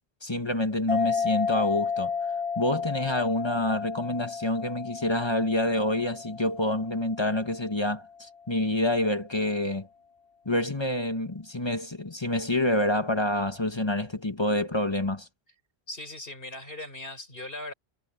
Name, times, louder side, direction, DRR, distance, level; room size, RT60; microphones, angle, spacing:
voice 1, 0.2-2.1 2.6-9.9 10.4-15.3, left 1 dB, 25° left, 1.6 m, -27 dB
sound 1, 0.9-7.9, left 5 dB, 60° right, 2.0 m, -32 dB
voice 2, 15.9-17.7, left 1 dB, 60° left, 6.0 m, -39 dB
omnidirectional pair, 1.1 m